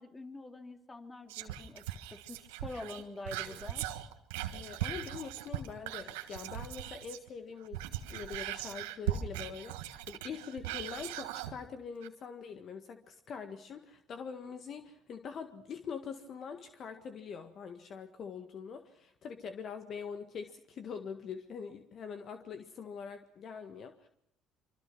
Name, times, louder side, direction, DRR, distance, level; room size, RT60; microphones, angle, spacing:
voice 1, 0.0-3.8, left 2 dB, 20° left, 6 dB, 2.8 m, -46 dB
Whispering, 1.3-7.3 7.6-11.6 12.0-12.1, right 12 dB, 85° right, 1.5 m, -39 dB
voice 2, 4.5-24.1, left 6 dB, 55° left, 7 dB, 1.7 m, -44 dB
26.0 x 25.0 x 6.2 m, 0.73 s
hypercardioid pair, 65°, 0 cm